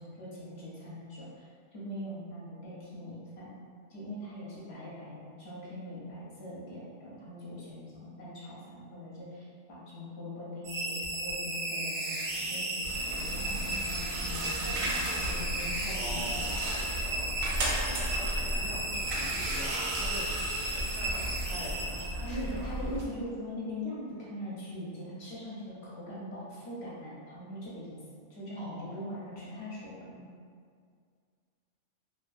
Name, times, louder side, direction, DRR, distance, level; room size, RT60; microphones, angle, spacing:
voice 1, 0.0-3.6 3.9-16.5 22.3-28.0 28.3-30.2, left 1 dB, 60° left, -7 dB, 0.9 m, -41 dB
sound 1, 10.6-22.5, right 1 dB, 65° right, 0.6 m, -35 dB
sound 2, 12.8-23.1, right 1 dB, 85° right, 1.0 m, -35 dB
voice 2, 15.8-20.3 20.7-22.7 28.5-28.8, equal, 25° left, -10 dB, 0.7 m, -44 dB
2.8 x 2.3 x 2.4 m, 2.1 s
omnidirectional pair, 1.4 m